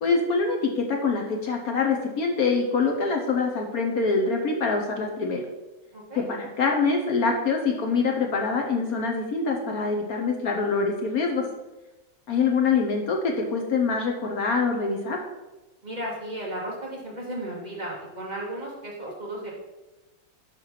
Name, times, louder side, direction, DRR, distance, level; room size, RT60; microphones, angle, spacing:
voice 1, 0.0-5.4 6.1-11.4 12.3-15.2, left 4 dB, 55° left, 2 dB, 1.1 m, -25 dB
voice 2, 5.9-6.2 15.8-19.5, right 1 dB, 25° right, -4 dB, 1.6 m, -34 dB
5.7 x 5.5 x 5.8 m, 1.1 s
omnidirectional pair, 2.2 m